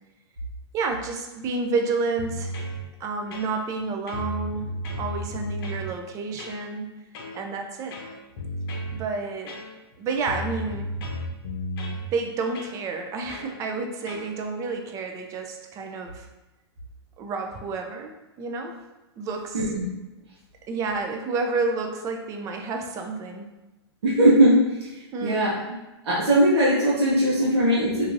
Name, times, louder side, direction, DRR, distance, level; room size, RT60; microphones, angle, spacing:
voice 1, 0.7-2.6 3.0-4.7 5.0-6.9 7.3-7.9 8.9-9.5 10.0-10.9 12.1-16.2 17.2-18.7 19.2-19.6 20.7-23.5 25.1-25.5, right 4 dB, 25° right, 4 dB, 0.3 m, -30 dB
sound 1, 2.2-2.8 3.3-3.8 4.1-5.9 6.4-6.6 7.1-7.4 7.9-9.0 9.5-9.9 10.2-12.0 12.5-12.8 13.3-13.5 14.1-14.3, left 1 dB, 60° left, 0.7 m, -33 dB
voice 2, 19.5-19.8 24.0-24.7 25.2-25.8 26.0-28.1, right 1 dB, 70° right, -7 dB, 0.8 m, -19 dB
2.9 x 2.5 x 2.5 m, 1.1 s
hypercardioid pair, 130°, 14 cm